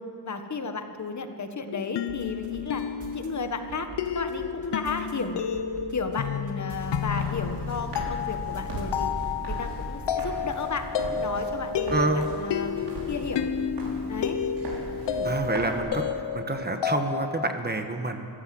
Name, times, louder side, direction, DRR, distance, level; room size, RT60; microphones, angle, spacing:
voice 1, 0.2-2.8 3.1-3.9 4.1-5.4 5.9-9.1 9.5-10.9 11.1-12.7 13.1-13.5 14.1-14.4 15.1-15.3, left 4 dB, 40° left, 7 dB, 1.5 m, -33 dB
sound 1, 1.7-17.6, left 7 dB, 75° left, 1.0 m, -31 dB
sound 2, 2.1-3.3 3.7-5.1 5.5-7.0 7.4-8.8 9.2-9.4, right 4 dB, 45° right, 3.2 m, -45 dB
Walk footsteps, 6.7-15.8, right 1 dB, 70° right, 6.3 m, -38 dB
voice 2, 11.9-12.3 15.2-16.0 16.3-18.3, right 3 dB, 25° right, 6 dB, 1.4 m, -28 dB
26.5 x 15.0 x 7.8 m, 2.5 s
wide cardioid pair, 140°, 42 cm